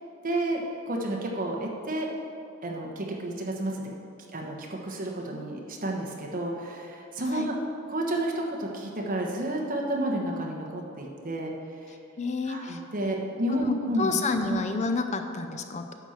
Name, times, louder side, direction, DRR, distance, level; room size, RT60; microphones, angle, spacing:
voice 1, 0.2-2.1 2.6-3.8 4.3-7.5 7.9-11.5 12.5-14.2 14.5-14.6, right 1 dB, 45° right, 0 dB, 1.2 m, -31 dB
voice 2, 12.2-12.8 13.5-15.9, left 4 dB, 35° left, 7 dB, 0.5 m, -29 dB
9.9 x 4.4 x 7.2 m, 2.5 s
head